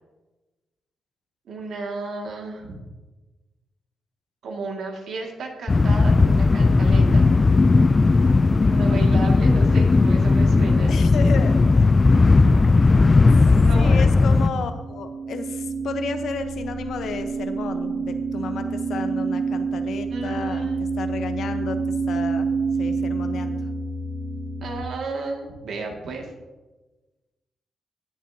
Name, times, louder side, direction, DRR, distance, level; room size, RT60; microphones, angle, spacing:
voice 1, 1.5-2.8 4.4-7.2 8.6-11.4 13.4-14.0 14.4-14.7 20.1-20.8 24.6-26.3, right 3 dB, 75° right, 1 dB, 2.1 m, -33 dB
sound 1, 5.7-14.5, left 3 dB, 30° left, 0.4 m, -16 dB
voice 2, 10.9-11.8 13.7-20.7 21.0-21.8 22.1-22.5 22.8-23.6, left 5 dB, 75° left, 8 dB, 0.9 m, -32 dB
sound 2, 14.7-24.8, right 4 dB, 55° right, 0.8 m, -28 dB
17.5 x 7.4 x 2.8 m, 1.2 s
cardioid pair, 70°, 0 cm